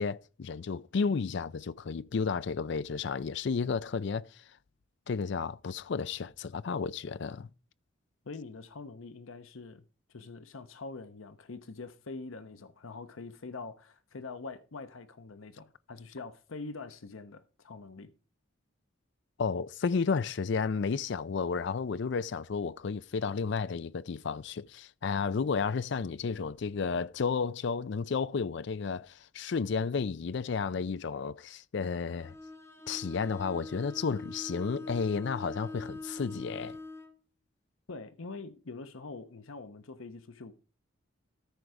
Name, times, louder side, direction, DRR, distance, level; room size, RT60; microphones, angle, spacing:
voice 1, 0.0-4.4 5.1-7.5 19.4-32.3 32.9-36.8, left 5 dB, 60° left, 0.4 m, -32 dB
voice 2, 8.2-9.8 10.1-18.1 37.9-40.5, left 3 dB, 80° left, 0.8 m, -44 dB
Bowed string instrument, 32.2-37.2, left 2 dB, 15° left, 0.8 m, -43 dB
13.5 x 4.6 x 5.0 m
head